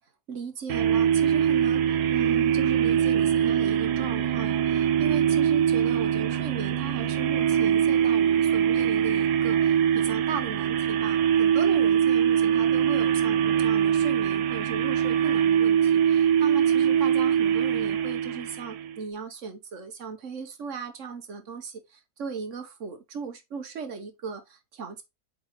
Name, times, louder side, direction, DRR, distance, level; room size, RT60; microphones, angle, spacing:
voice 1, 0.3-25.0, right 5 dB, 55° right, 1.2 m, -37 dB
sound 1, 0.7-19.0, right 9 dB, 85° right, 1.3 m, -23 dB
8.1 x 3.8 x 3.0 m
omnidirectional pair, 1.7 m